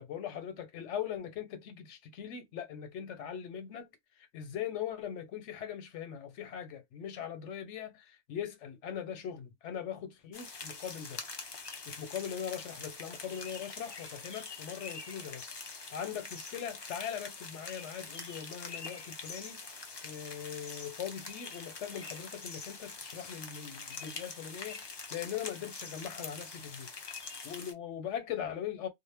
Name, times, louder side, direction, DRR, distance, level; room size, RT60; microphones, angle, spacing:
voice 1, 0.0-3.9 4.2-11.2 11.9-19.6 20.0-26.9 27.4-28.9, left 9 dB, 90° left, 1.0 m, -40 dB
sound 1, 10.3-27.7, left 4 dB, 45° left, 0.3 m, -44 dB
2.1 x 2.0 x 3.3 m
omnidirectional pair, 1.2 m